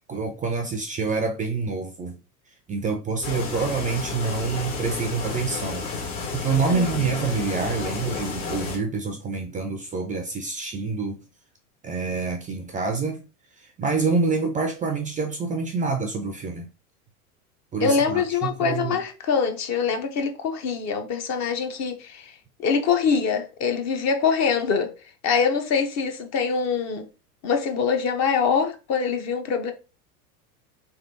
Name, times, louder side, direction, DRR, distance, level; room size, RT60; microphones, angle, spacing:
voice 1, 0.1-2.2 2.7-5.9 6.3-11.2 11.8-13.2 13.6-16.6 17.7-19.0, right 4 dB, 20° right, 0.4 m, -27 dB
sound 1, 3.2-8.8, left 4 dB, 60° left, 1.8 m, -31 dB
voice 2, 17.8-22.3 22.6-24.9 25.2-27.0 27.4-29.7, left 6 dB, 35° left, 0.8 m, -24 dB
3.5 x 3.3 x 2.7 m
hypercardioid pair, 90°, 44 cm